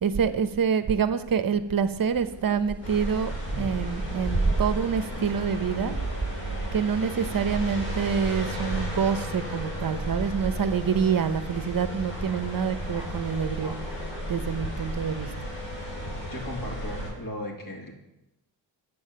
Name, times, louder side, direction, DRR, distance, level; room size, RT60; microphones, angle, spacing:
voice 1, 0.0-6.0 6.7-13.8 14.3-15.3, right 7 dB, 50° right, 11 dB, 0.8 m, -27 dB
sound 1, 2.1-14.9, right 3 dB, 5° right, 1.6 m, -35 dB
sound 2, 2.8-17.1, equal, 75° left, 4.5 m, -34 dB
voice 2, 16.3-17.9, left 1 dB, 45° left, 0 dB, 2.7 m, -36 dB
8.4 x 7.1 x 6.7 m, 0.93 s
cardioid pair, 70°, 45 cm